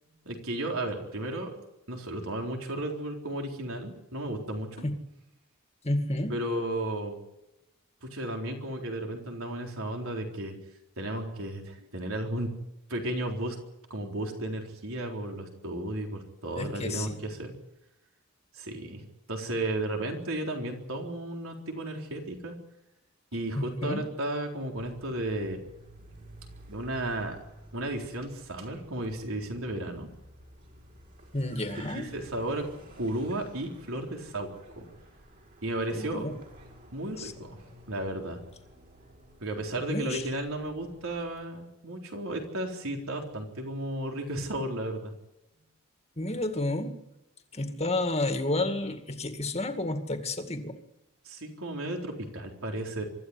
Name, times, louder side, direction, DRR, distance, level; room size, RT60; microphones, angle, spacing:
voice 1, 0.2-1.6 1.9-4.8 6.3-7.1 8.0-10.5 11.0-12.5 12.9-13.6 13.9-17.6 18.5-19.0 19.3-22.5 23.3-25.6 26.7-27.4 27.7-30.1 31.9-32.7 33.0-34.5 34.7-34.9 35.6-36.3 36.9-37.6 37.9-38.4 39.4-45.1 51.2-53.0, right 1 dB, 70° right, 2 dB, 4.1 m, -34 dB
voice 2, 5.8-6.4 16.6-17.2 23.6-24.0 31.3-32.1 35.9-36.3 37.2-37.3 39.9-40.2 46.2-47.0 47.5-50.8, left 2 dB, 30° left, 6 dB, 2.1 m, -30 dB
Car, 24.7-41.5, right 1 dB, 40° right, 5.4 m, -52 dB
24.5 x 14.0 x 9.9 m, 0.90 s
head